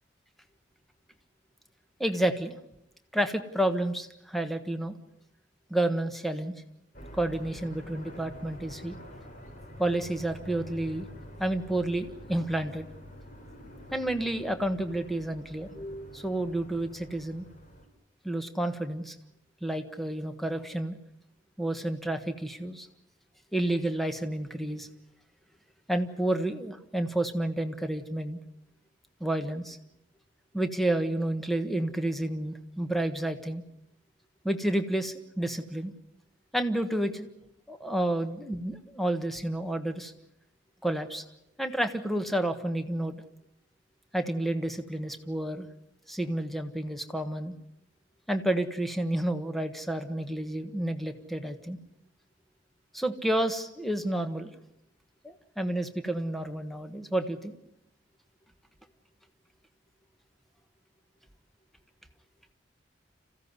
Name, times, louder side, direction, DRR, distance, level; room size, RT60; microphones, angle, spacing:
voice 1, 2.0-2.5 3.1-5.0 5.7-6.5 7.1-8.9 9.8-11.1 11.4-12.9 13.9-17.4 18.2-19.2 19.6-21.0 21.6-22.9 23.5-24.9 25.9-28.4 29.2-29.8 30.5-33.6 34.4-35.9 36.5-37.3 37.7-40.1 40.8-41.2 41.6-43.2 44.1-45.7 46.1-47.5 48.3-51.8 52.9-54.5 55.2-57.6, right 1 dB, ahead, 7 dB, 1.4 m, -30 dB
sound 1, 6.9-17.9, equal, 40° left, 4.0 m, -47 dB
27.0 x 16.0 x 9.7 m, 0.83 s
head